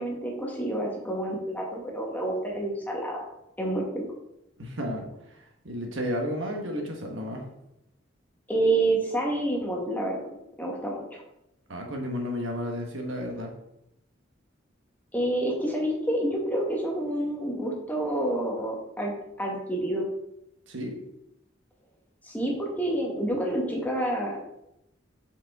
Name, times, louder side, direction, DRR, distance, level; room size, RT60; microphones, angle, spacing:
voice 1, 0.0-3.2 3.6-4.0 8.5-10.3 10.6-11.2 15.1-19.1 19.4-20.1 22.2-24.4, right 1 dB, 10° left, -2 dB, 1.2 m, -28 dB
voice 2, 4.6-7.5 11.7-13.5 20.7-21.0, equal, 90° right, 2 dB, 1.3 m, -33 dB
5.3 x 5.3 x 3.6 m, 0.82 s
head